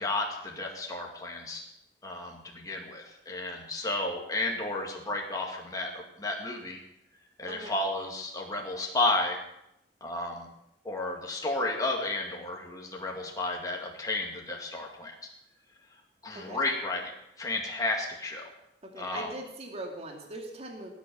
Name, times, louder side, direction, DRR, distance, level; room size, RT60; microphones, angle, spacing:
voice 1, 0.0-1.7 2.0-6.8 7.4-9.4 10.0-10.5 10.8-15.1 16.2-17.1 17.4-18.4 19.0-19.3, left 2 dB, 20° left, -1 dB, 2.1 m, -32 dB
voice 2, 18.8-20.9, right 1 dB, 35° right, 2 dB, 2.5 m, -41 dB
18.5 x 9.4 x 7.0 m, 0.81 s
head